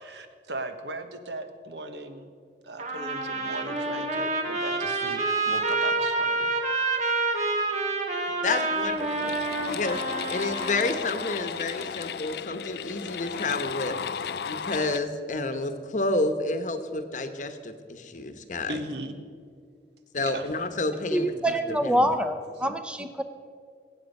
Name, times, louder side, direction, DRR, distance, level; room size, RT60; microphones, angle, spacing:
voice 1, 0.0-2.3 2.6-6.4 9.6-9.7 18.7-19.2 20.1-20.4, right 2 dB, 75° right, 8 dB, 1.1 m, -38 dB
Trumpet, 2.8-11.0, right 3 dB, 40° right, 1.6 m, -28 dB
sound 1, 8.3-8.4 8.8-15.0, left 7 dB, 60° left, 0.4 m, -34 dB
voice 2, 8.4-9.4 9.7-10.0 10.3-14.0 14.5-18.8 20.1-21.4 21.8-22.1, left 2 dB, 45° left, 8 dB, 1.0 m, -30 dB
voice 3, 21.1-23.2, right 1 dB, 5° right, 8 dB, 0.6 m, -26 dB
22.0 x 8.5 x 5.4 m, 2.2 s
head